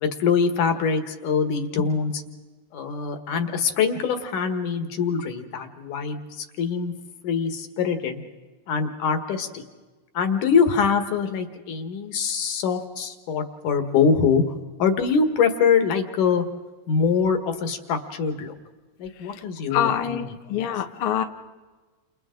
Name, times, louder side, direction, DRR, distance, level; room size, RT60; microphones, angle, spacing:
voice 1, 0.0-2.2 2.7-6.9 7.2-8.2 8.7-9.7 10.1-14.4 14.8-16.4 16.9-18.5 19.0-20.4, left 6 dB, 60° left, 7 dB, 2.7 m, -23 dB
voice 2, 19.7-21.2, left 9 dB, 75° left, 5 dB, 1.2 m, -25 dB
29.5 x 29.0 x 3.8 m, 1.3 s
omnidirectional pair, 4.3 m